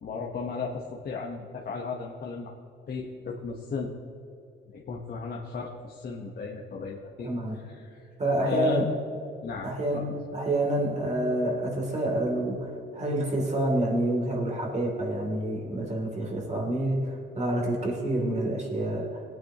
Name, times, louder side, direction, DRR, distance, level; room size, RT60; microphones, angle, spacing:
voice 1, 0.0-2.5 2.9-4.0 4.7-7.3 7.6-8.1 8.4-8.9 9.4-10.0, left 5 dB, 50° left, -1 dB, 1.2 m, -35 dB
voice 2, 7.2-7.6 8.2-8.9 9.6-19.1, right 1 dB, 35° right, -1 dB, 2.9 m, -28 dB
18.0 x 9.0 x 3.0 m, 2.6 s
cardioid pair, 90°, 20 cm